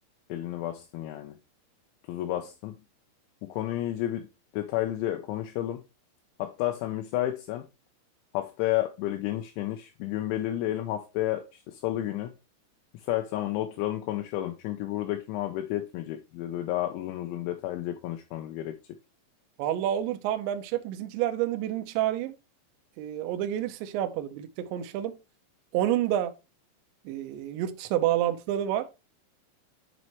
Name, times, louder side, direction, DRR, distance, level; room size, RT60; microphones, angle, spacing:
voice 1, 0.3-1.4 2.1-2.8 3.5-4.3 4.5-5.8 6.4-7.6 8.3-12.3 12.9-18.8, left 13 dB, 80° left, 2.9 m, -31 dB
voice 2, 19.6-22.3 23.0-25.2 25.7-26.3 27.1-28.9, right 12 dB, 80° right, 2.7 m, -29 dB
9.3 x 5.4 x 3.0 m
omnidirectional pair, 5.7 m